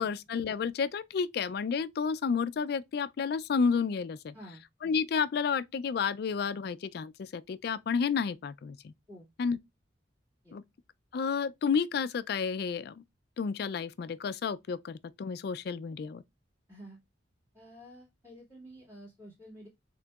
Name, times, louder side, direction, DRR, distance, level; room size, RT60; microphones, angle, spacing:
voice 1, 0.0-4.3 4.8-8.9 9.4-9.6 10.5-10.6 11.1-13.0 13.4-16.2, left 6 dB, 55° left, 0.3 m, -31 dB
voice 2, 16.7-17.0 17.5-19.7, equal, 15° right, 2.4 m, -50 dB
4.7 x 3.7 x 2.3 m
head